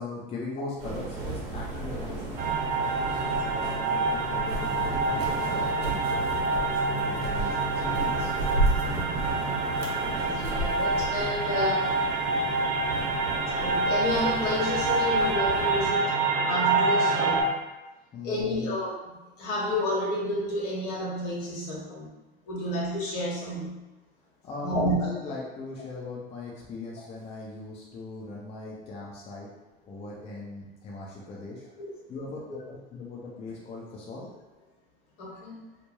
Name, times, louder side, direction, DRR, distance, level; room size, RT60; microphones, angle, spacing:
voice 1, 0.0-6.0 6.4-8.3 18.1-18.7 24.4-29.5 29.9-31.6 32.1-34.3, left 3 dB, 20° left, -4 dB, 0.5 m, -40 dB
sound 1, 0.8-15.9, right 2 dB, 55° right, 0.9 m, -37 dB
sound 2, 2.4-17.4, right 3 dB, 30° right, 0.5 m, -27 dB
sound 3, 4.5-11.2, right 1 dB, 85° right, 0.7 m, -33 dB
voice 2, 8.9-9.3 10.2-12.0 13.5-17.5 18.2-22.1 22.5-23.8 24.6-25.0 31.8-31.9 35.2-35.6, left 1 dB, 55° left, -4 dB, 1.0 m, -30 dB
2.3 x 2.1 x 3.0 m, 1.1 s
hypercardioid pair, 85°, 30 cm